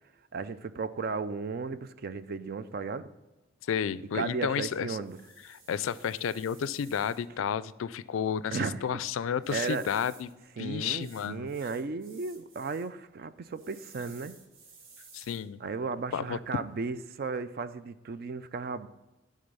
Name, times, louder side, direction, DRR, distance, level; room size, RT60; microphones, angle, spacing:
voice 1, 0.3-3.1 4.1-5.2 8.5-9.0 9.5-9.9 10.6-14.4 15.6-18.9, right 4 dB, 50° right, 13 dB, 0.4 m, -35 dB
voice 2, 3.7-5.0 5.5-10.3 10.6-11.5 15.1-15.6 16.1-16.4, left 8 dB, 80° left, 17 dB, 0.3 m, -32 dB
sound 1, 3.8-16.8, right 4 dB, 80° right, 1.2 m, -57 dB
11.0 x 3.8 x 5.3 m, 1.1 s
head